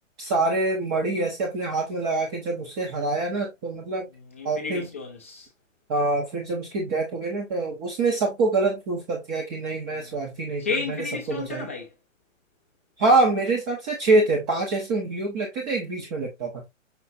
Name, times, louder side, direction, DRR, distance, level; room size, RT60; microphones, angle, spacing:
voice 1, 0.2-4.1 4.4-4.9 5.9-10.7 11.3-11.7 13.0-16.6, right 3 dB, 20° right, 0.7 m, -25 dB
voice 2, 4.1-5.5 9.9-10.2 10.6-11.9, left 5 dB, 10° left, 0.4 m, -33 dB
5.9 x 3.1 x 2.6 m
hypercardioid pair, 150°, 39 cm